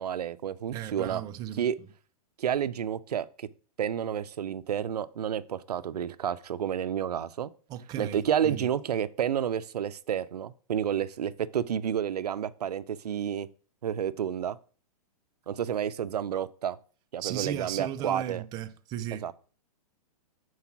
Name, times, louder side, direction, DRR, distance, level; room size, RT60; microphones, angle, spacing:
voice 1, 0.0-1.2 1.6-1.8 2.4-3.5 3.8-7.5 8.0-13.5 13.8-14.6 15.5-16.8 17.1-18.4 19.2-19.3, right 9 dB, 90° right, 0.6 m, -30 dB
voice 2, 0.7-1.6 7.7-8.7 17.2-19.3, right 11 dB, 20° right, 0.5 m, -36 dB
6.9 x 4.8 x 6.0 m
hypercardioid pair, 145°, 20 cm